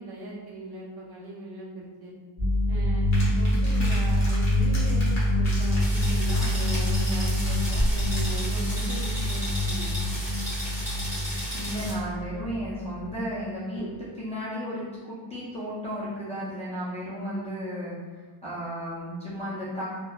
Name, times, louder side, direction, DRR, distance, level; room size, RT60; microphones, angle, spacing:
voice 1, 0.0-2.2 2.7-10.0, right 2 dB, 50° right, -4 dB, 0.6 m, -39 dB
sound 1, 2.4-13.2 13.8-14.1, left 1 dB, 30° right, 1.3 m, -26 dB
sound 2, 3.1-8.4, equal, 35° left, 0.8 m, -35 dB
sound 3, 5.8-11.9, equal, 5° right, 1.3 m, -35 dB
voice 2, 11.5-17.9 18.4-19.9, equal, 15° left, -11 dB, 0.3 m, -34 dB
3.0 x 2.1 x 2.3 m, 1.4 s
wide cardioid pair, 180°, 49 cm